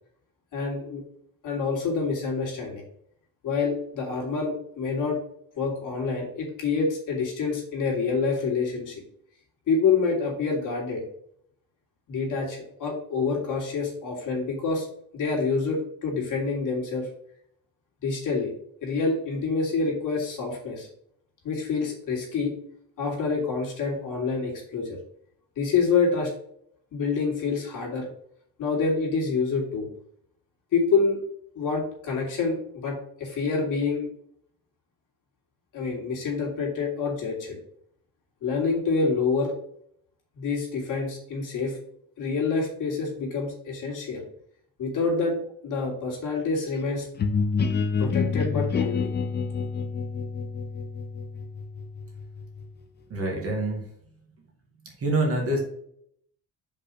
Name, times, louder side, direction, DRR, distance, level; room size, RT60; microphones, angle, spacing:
voice 1, 0.5-1.0 1.4-2.8 3.4-5.2 5.6-9.0 9.7-11.0 12.1-14.9 15.1-17.1 18.0-18.5 18.8-20.9 21.4-22.5 23.0-25.0 25.6-26.3 26.9-28.1 28.6-29.9 30.7-31.2 31.6-34.1 35.7-37.6 38.4-39.5 40.3-41.8 42.2-44.2 44.8-45.4 45.6-47.1 48.0-49.1, left 4 dB, 55° left, -1 dB, 2.5 m, -27 dB
sound 1, 47.2-52.8, left 5 dB, 30° left, 0.6 m, -28 dB
voice 2, 53.1-53.9 54.4-54.5 55.0-55.6, right 2 dB, 40° right, 0 dB, 1.9 m, -26 dB
5.3 x 4.2 x 4.9 m, 0.68 s
cardioid pair, 150°, 37 cm